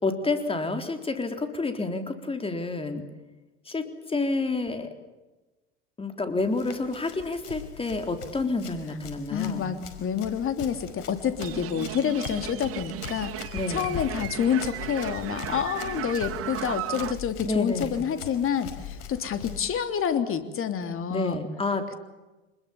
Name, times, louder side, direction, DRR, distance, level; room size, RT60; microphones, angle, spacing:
voice 1, 0.0-3.0 3.7-4.9 6.0-9.7 13.5-13.9 17.4-18.0 21.1-21.9, left 3 dB, 15° left, 6 dB, 3.7 m, -29 dB
Run, 6.4-19.6, left 8 dB, 65° left, 5.2 m, -41 dB
voice 2, 9.3-13.4 13.7-21.4, left 8 dB, 40° left, 8 dB, 3.2 m, -28 dB
sound 1, 11.4-17.1, right 14 dB, 45° right, 1.0 m, -36 dB
26.5 x 21.0 x 7.2 m, 1.1 s
hypercardioid pair, 80°, 33 cm